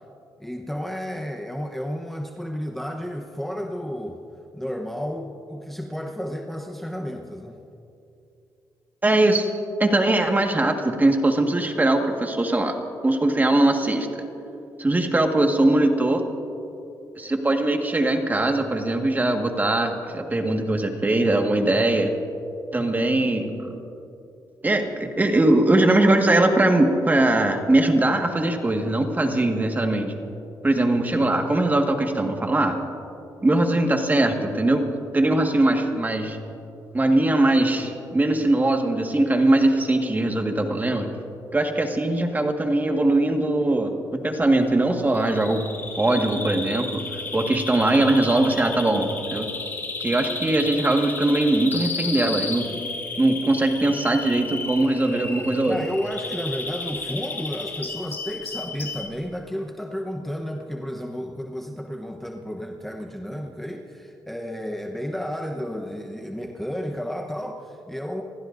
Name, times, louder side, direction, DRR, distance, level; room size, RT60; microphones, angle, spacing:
voice 1, 0.4-4.2 4.5-7.6 55.7-68.2, equal, 5° left, 2 dB, 1.0 m, -32 dB
voice 2, 9.0-9.5 9.8-12.8 13.0-14.2 14.8-16.2 17.2-22.1 22.7-23.8 24.6-30.1 30.6-32.8 33.4-34.9 35.1-36.4 36.9-41.1 41.5-43.9 44.2-45.6 46.0-49.5 50.0-52.7 53.2-55.8, right 2 dB, 25° right, 3 dB, 1.8 m, -21 dB
Bird vocalization bird call bird song, 45.1-59.1, left 3 dB, 30° left, 3.0 m, -33 dB
28.5 x 15.5 x 2.7 m, 2.7 s
cardioid pair, 80°, 8 cm